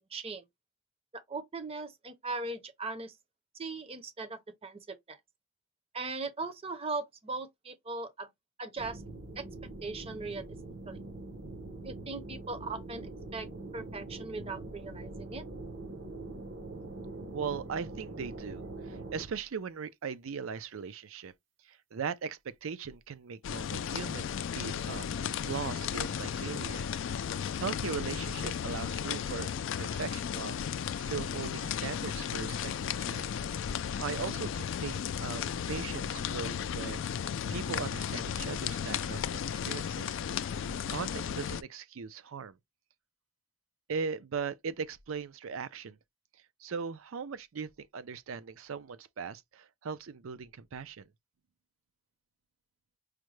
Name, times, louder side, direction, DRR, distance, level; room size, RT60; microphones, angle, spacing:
voice 1, 0.1-0.5 1.1-3.1 3.6-5.2 5.9-8.3 8.6-9.0 9.4-9.5 9.8-10.4 10.9-11.0 11.8-13.5 13.7-15.4, right 3 dB, 30° right, 0.6 m, -39 dB
sound 1, 8.8-19.2, right 2 dB, 60° right, 0.9 m, -43 dB
voice 2, 17.3-21.3 21.6-26.8 27.6-33.3 34.0-37.1 37.5-40.2 40.9-42.6 43.9-46.0 46.6-51.1, right 6 dB, 75° right, 0.5 m, -39 dB
sound 2, 23.4-41.6, left 8 dB, 65° left, 0.3 m, -35 dB
4.9 x 2.2 x 3.1 m
head